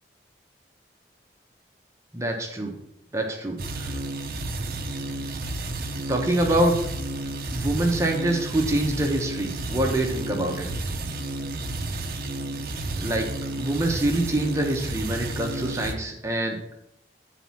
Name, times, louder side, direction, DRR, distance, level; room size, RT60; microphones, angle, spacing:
voice 1, 2.1-2.7 3.1-3.9 6.1-6.7 7.5-10.7 13.0-13.3 13.6-16.6, right 1 dB, 15° right, 1 dB, 1.0 m, -25 dB
sound 1, 3.6-15.9, right 2 dB, 55° right, 0.7 m, -31 dB
8.0 x 4.1 x 5.7 m, 0.76 s
head